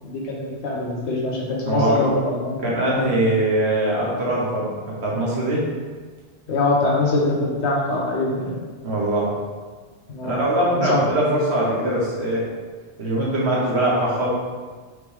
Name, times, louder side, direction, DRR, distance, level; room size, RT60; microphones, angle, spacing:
voice 1, 0.0-2.6 2.8-3.0 6.5-8.6 10.1-10.4 10.7-11.3, left 2 dB, 90° left, -2 dB, 1.2 m, -23 dB
voice 2, 1.6-2.0 2.6-5.6 8.8-9.3 10.2-12.4 13.0-14.3, right 1 dB, 75° right, -5 dB, 1.4 m, -22 dB
4.9 x 3.3 x 3.2 m, 1.4 s
omnidirectional pair, 1.1 m